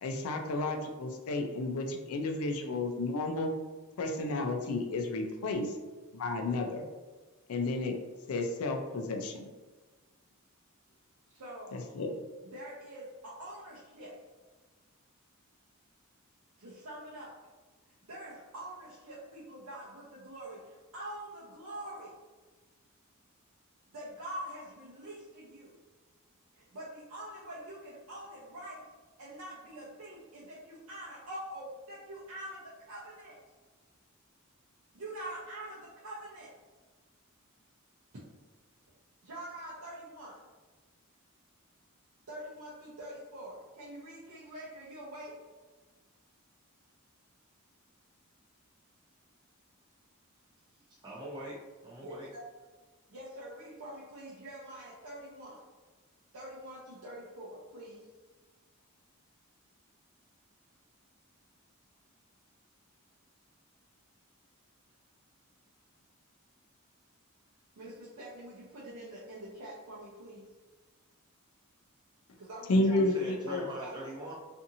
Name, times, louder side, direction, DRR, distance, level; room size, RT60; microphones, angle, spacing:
voice 1, 0.0-3.5 4.0-5.8 6.1-6.9 7.5-8.0 8.3-9.5 11.7-12.1 72.7-73.7, left 2 dB, 85° left, 4 dB, 0.4 m, -31 dB
voice 2, 11.3-11.8 12.5-14.2 16.6-17.5 18.1-22.2 23.9-25.8 26.6-28.9 29.2-33.4 34.9-36.5 39.2-40.5 42.3-45.5 52.0-52.4 53.1-55.6 56.3-58.0 67.8-70.5 72.4-73.0 73.5-73.9, right 1 dB, 75° right, -7 dB, 0.6 m, -45 dB
voice 3, 51.0-52.3 72.8-74.3, right 1 dB, 20° right, -6 dB, 0.4 m, -42 dB
2.7 x 2.5 x 2.6 m, 1.3 s
head